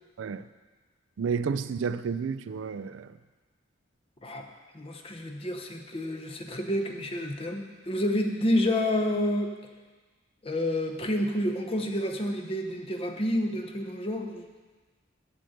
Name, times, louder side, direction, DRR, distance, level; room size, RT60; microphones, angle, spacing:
voice 1, 1.2-3.2, right 6 dB, 75° right, 13 dB, 0.4 m, -31 dB
voice 2, 4.7-9.5 10.4-14.5, left 1 dB, 30° left, 4 dB, 0.8 m, -29 dB
7.6 x 6.6 x 7.8 m, 1.3 s
head